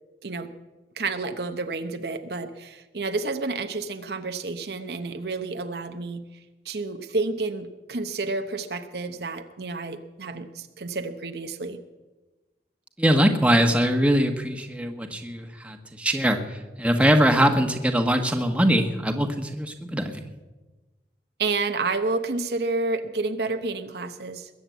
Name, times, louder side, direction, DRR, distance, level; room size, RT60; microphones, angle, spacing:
voice 1, 1.0-6.2 6.6-11.8 21.4-24.5, right 3 dB, 65° right, 7 dB, 0.9 m, -30 dB
voice 2, 13.0-20.2, equal, 5° right, 4 dB, 1.3 m, -22 dB
21.5 x 7.8 x 8.2 m, 1.2 s
head